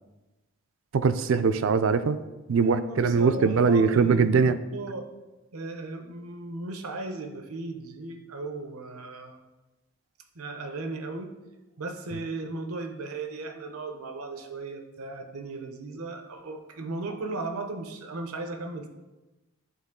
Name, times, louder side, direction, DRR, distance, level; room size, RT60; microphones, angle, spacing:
voice 1, 0.9-2.2 2.5-4.6, right 5 dB, 65° right, 12 dB, 0.4 m, -22 dB
voice 2, 2.6-5.1 5.5-9.4 10.3-11.3 11.8-18.9, right 3 dB, 85° right, 6 dB, 0.8 m, -36 dB
10.5 x 3.9 x 3.7 m, 1.1 s
head